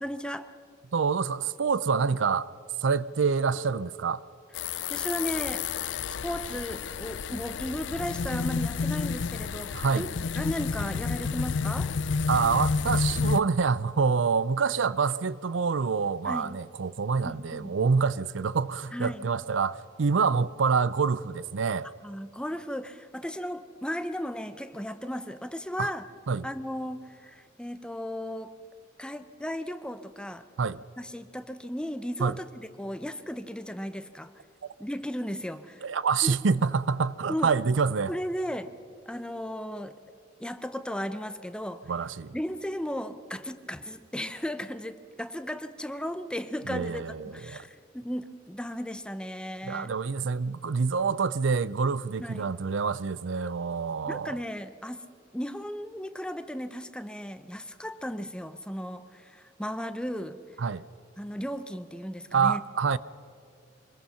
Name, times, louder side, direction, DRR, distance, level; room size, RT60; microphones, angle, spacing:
voice 1, 0.0-0.5 4.9-5.7 6.1-11.9 16.2-16.5 17.2-17.7 18.9-19.3 22.0-26.1 26.4-28.5 29.0-30.5 31.0-34.4 34.8-35.9 36.2-36.4 37.3-37.5 38.1-38.7 39.1-39.9 40.4-41.8 42.3-49.9 52.2-52.5 54.1-55.1 55.3-60.6 61.2-62.6, equal, 5° left, 0.7 m, -35 dB
voice 2, 0.9-2.5 2.8-4.2 9.7-10.1 12.3-21.9 25.8-25.9 26.3-26.5 30.6-30.8 32.2-32.3 35.8-38.1 41.9-42.4 46.7-47.6 49.7-54.3 60.6-60.8 62.3-63.0, right 5 dB, 85° right, 0.5 m, -26 dB
sound 1, 4.5-13.4, left 5 dB, 70° left, 0.5 m, -30 dB
25.0 x 20.5 x 5.7 m
head